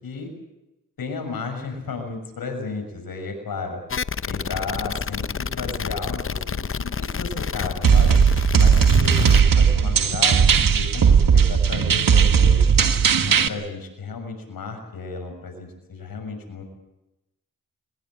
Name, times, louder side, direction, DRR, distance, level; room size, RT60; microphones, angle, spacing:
voice 1, 1.0-3.8 4.3-8.2 8.6-12.7 13.1-16.6, left 4 dB, 85° left, 5 dB, 6.6 m, -33 dB
sound 1, 3.9-9.4, left 6 dB, 40° left, 0.7 m, -29 dB
sound 2, 7.8-13.5, right 6 dB, 70° right, 1.5 m, -17 dB
22.5 x 21.0 x 7.9 m, 0.96 s
cardioid pair, 65°, 35 cm